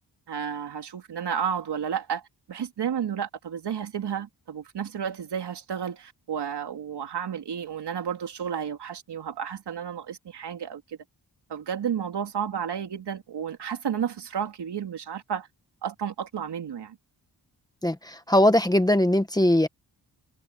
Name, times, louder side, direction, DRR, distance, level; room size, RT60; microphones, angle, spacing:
voice 1, 0.3-2.2 2.5-11.0 11.5-15.5 15.8-17.0, right 8 dB, 80° right, 3.3 m, -32 dB
voice 2, 17.8-19.7, left 1 dB, 10° left, 1.2 m, -20 dB
wide cardioid pair, 140°, 40 cm